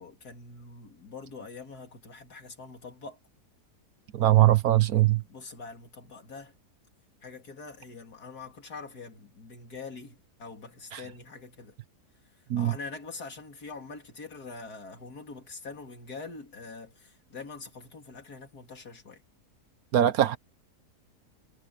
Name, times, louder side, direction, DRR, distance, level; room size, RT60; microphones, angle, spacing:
voice 1, 0.0-3.2 5.2-6.5 7.2-11.7 12.6-19.2, left 4 dB, 65° left, 3.4 m, -44 dB
voice 2, 4.1-5.2 10.9-11.0 12.5-12.7 19.9-20.4, right 13 dB, 65° right, 1.1 m, -21 dB
omnidirectional pair, 1.8 m